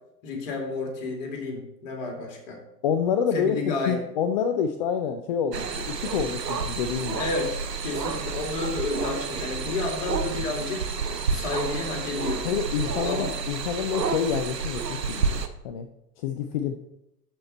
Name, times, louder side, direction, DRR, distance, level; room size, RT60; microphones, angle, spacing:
voice 1, 0.2-2.6 3.3-4.0 7.2-7.6 7.8-10.9 11.3-12.5 13.0-13.3, left 3 dB, 50° left, 2 dB, 2.5 m, -31 dB
voice 2, 2.8-7.3 12.4-15.9 16.2-16.8, left 7 dB, 30° left, 7 dB, 0.4 m, -28 dB
sound 1, 5.5-15.5, right 5 dB, 80° right, 0.9 m, -30 dB
12.5 x 4.5 x 4.1 m, 0.86 s
figure-of-eight pair, 95°, 49 cm